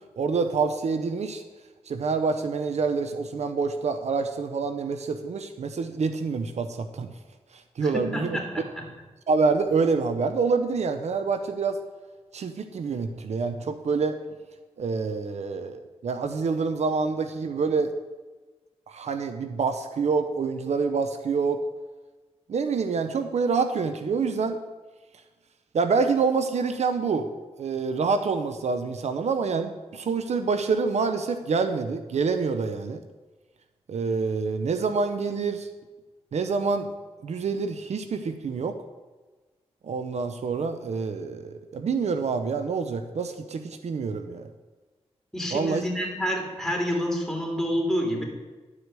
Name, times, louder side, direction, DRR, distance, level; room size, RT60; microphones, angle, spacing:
voice 1, 0.2-1.4 1.9-7.1 7.8-8.4 9.3-11.8 12.3-14.2 14.8-17.9 18.9-21.6 22.5-24.6 25.7-27.3 27.6-33.0 33.9-35.7 36.3-36.9 37.2-38.7 39.8-44.5 45.5-45.8, right 4 dB, 70° right, 8 dB, 0.7 m, -26 dB
voice 2, 7.8-8.8 45.3-48.2, equal, 5° left, 0 dB, 3.3 m, -28 dB
11.0 x 4.8 x 6.8 m, 1.3 s
cardioid pair, 45°, 12 cm